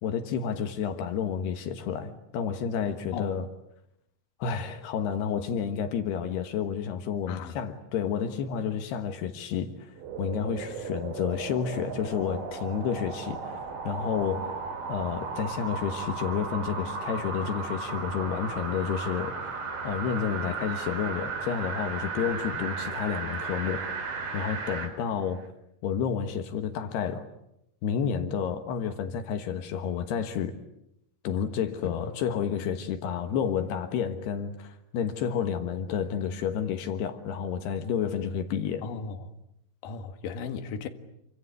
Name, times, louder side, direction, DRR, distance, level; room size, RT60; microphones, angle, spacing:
voice 1, 0.0-3.5 4.4-14.6 14.9-19.6 19.8-23.8 24.3-25.5 25.8-27.3 27.8-30.6 31.2-38.9, left 7 dB, 75° left, 3.4 m, -30 dB
sound 1, 10.0-24.9 25.4-25.5, right 4 dB, 85° right, 6.5 m, -35 dB
voice 2, 38.8-39.2 39.8-40.9, left 6 dB, 60° left, 3.1 m, -36 dB
28.5 x 25.5 x 8.2 m
omnidirectional pair, 4.8 m